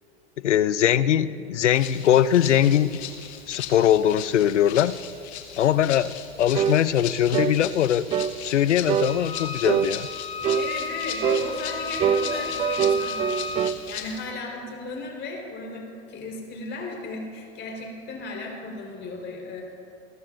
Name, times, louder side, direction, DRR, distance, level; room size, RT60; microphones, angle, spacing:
voice 1, 0.4-3.0 3.5-5.0 5.6-8.1 8.4-10.1, left 10 dB, 85° left, 16 dB, 0.6 m, -21 dB
Rattle (instrument), 1.7-14.3, left 9 dB, 70° left, 1.7 m, -38 dB
sound 1, 6.5-6.8 7.3-7.6 8.1-8.4 8.9-9.1 9.6-9.9 10.4-10.7 11.2-11.5 12.0-13.8, right 8 dB, 20° right, 0.3 m, -23 dB
Wind instrument woodwind instrument, 9.0-13.7, left 4 dB, 15° left, 0.8 m, -34 dB
voice 2, 10.5-19.6, left 3 dB, 30° left, 0 dB, 4.2 m, -35 dB
27.5 x 14.0 x 2.6 m, 2.7 s
hypercardioid pair, 95°, 35 cm